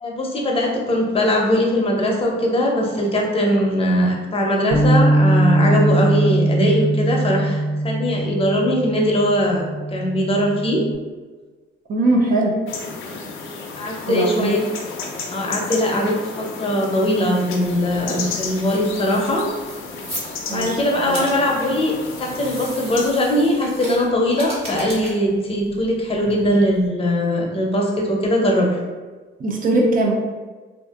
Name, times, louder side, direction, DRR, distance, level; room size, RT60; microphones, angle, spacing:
voice 1, 0.0-9.6 9.9-10.8 13.8-14.6 15.3-19.5 20.5-21.9 22.2-28.8, equal, 30° left, -1 dB, 0.6 m, -20 dB
Bass guitar, 4.7-11.0, right 1 dB, 80° right, 0.7 m, -20 dB
voice 2, 11.9-12.6 14.1-14.6 20.5-20.8 21.0-21.3 26.3-26.4 29.4-30.2, right 2 dB, 45° right, 0 dB, 0.5 m, -20 dB
sound 1, 12.7-23.1, left 4 dB, 85° left, 0.4 m, -33 dB
sound 2, 17.6-26.9, equal, 30° right, 1.4 m, -38 dB
2.5 x 2.4 x 2.4 m, 1.3 s
cardioid pair, 90°, 20 cm